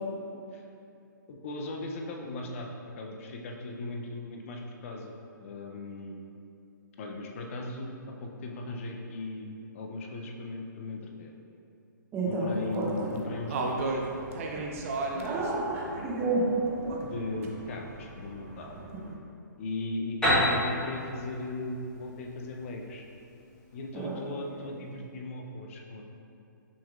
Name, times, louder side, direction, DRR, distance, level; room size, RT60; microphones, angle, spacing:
voice 1, 1.3-2.7 3.0-5.2 5.4-6.2 7.0-11.3 12.2-14.0 15.1-15.6 17.1-18.8 19.6-23.0 23.7-26.0, left 2 dB, 40° left, 1 dB, 0.5 m, -38 dB
voice 2, 12.1-13.1 15.2-17.0 23.9-24.2, right 2 dB, 20° right, -5 dB, 0.9 m, -30 dB
sound 1, 12.6-19.1, right 3 dB, 45° right, 0.5 m, -37 dB
Piano, 20.2-23.9, equal, 10° left, 1.5 m, -29 dB
5.9 x 3.5 x 2.4 m, 2.6 s
hypercardioid pair, 140°, 11 cm